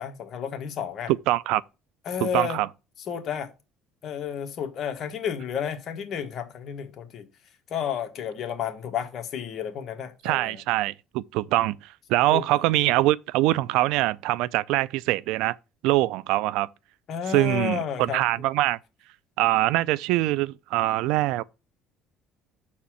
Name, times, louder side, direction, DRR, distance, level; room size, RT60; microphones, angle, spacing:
voice 1, 0.0-1.1 2.0-2.6 3.1-3.5 4.0-7.3 7.7-10.6 12.3-12.6 17.1-18.2, left 8 dB, 50° left, 1.4 m, -31 dB
voice 2, 1.3-1.6 2.2-2.7 10.2-11.8 12.1-15.6 15.8-16.7 17.3-18.8 19.4-21.4, right 17 dB, 80° right, 0.4 m, -23 dB
6.8 x 4.3 x 6.2 m
cardioid pair, 120°, 0 cm